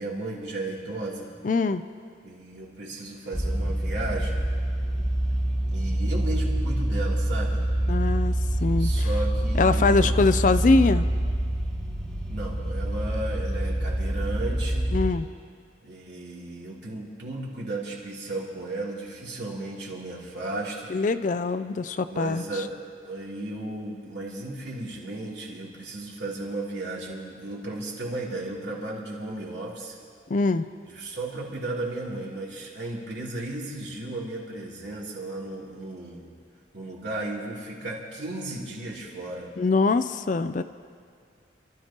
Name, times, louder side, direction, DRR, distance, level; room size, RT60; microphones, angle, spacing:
voice 1, 0.0-1.3 2.2-4.4 5.7-7.6 8.7-10.1 12.3-14.9 15.8-20.9 22.0-22.7 23.0-29.9 30.8-36.2 36.7-39.5, right 2 dB, 65° right, -5 dB, 3.1 m, -34 dB
voice 2, 1.4-1.8 7.9-8.3 8.6-9.1 9.6-11.0 14.9-15.3 20.9-22.4 30.3-30.7 39.6-40.6, left 3 dB, 40° left, 11 dB, 0.4 m, -23 dB
sound 1, 3.3-15.1, right 1 dB, ahead, 1.7 m, -26 dB
29.0 x 13.0 x 2.9 m, 2.1 s
head